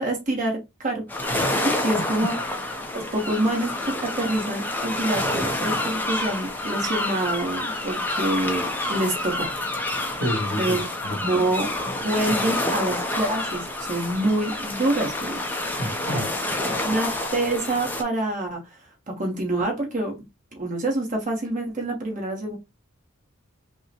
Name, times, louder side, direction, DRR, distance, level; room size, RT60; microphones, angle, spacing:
voice 1, 0.0-2.6 2.9-9.5 9.9-10.2 10.6-10.8 11.2-15.4 16.1-16.3 16.6-18.8 19.1-20.2 20.5-22.6, right 1 dB, 40° right, 1.1 m, -27 dB
sound 1, 1.1-18.0, left 1 dB, 10° left, 0.6 m, -28 dB
voice 2, 10.1-10.8 11.0-11.2 15.8-16.3, equal, 60° right, 1.7 m, -28 dB
5.4 x 2.1 x 2.9 m
head